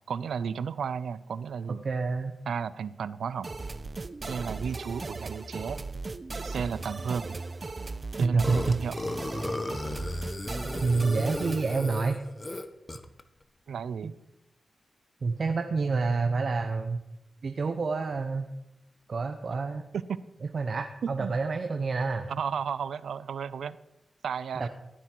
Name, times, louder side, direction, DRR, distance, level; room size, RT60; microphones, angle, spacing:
voice 1, 0.1-1.8 2.5-3.5 4.3-5.8 6.4-7.4 8.2-9.0 13.7-14.1 19.9-20.2 21.0-21.3 22.3-23.8 24.2-24.7, right 7 dB, 90° right, 17 dB, 0.5 m, -33 dB
voice 2, 1.8-2.4 8.2-8.8 10.8-12.2 12.5-12.6 14.0-14.1 15.2-17.0 17.4-18.5 19.1-19.8 20.5-22.3 24.6-24.7, right 4 dB, 65° right, 6 dB, 1.0 m, -28 dB
sound 1, 3.4-11.8, right 3 dB, 45° right, 0.8 m, -37 dB
Burping eructation, 8.4-13.2, left 2 dB, 30° left, 1.1 m, -35 dB
17.5 x 9.8 x 4.6 m, 0.90 s
cardioid pair, 60°, 0 cm